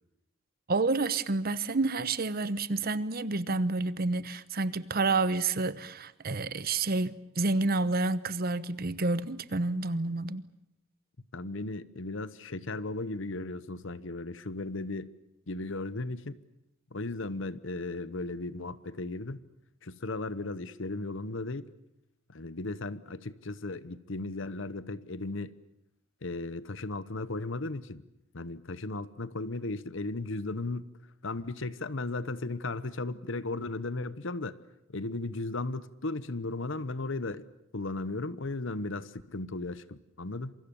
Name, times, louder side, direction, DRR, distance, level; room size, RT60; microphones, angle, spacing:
voice 1, 0.7-10.5, right 3 dB, 45° right, 0.9 m, -29 dB
voice 2, 11.3-15.1 15.5-16.4 16.9-19.4 19.8-21.7 22.3-25.5 26.2-28.0 28.3-30.9 31.2-34.6 34.9-37.5 37.7-40.6, left 2 dB, 65° left, 1.0 m, -36 dB
27.0 x 24.5 x 7.0 m
head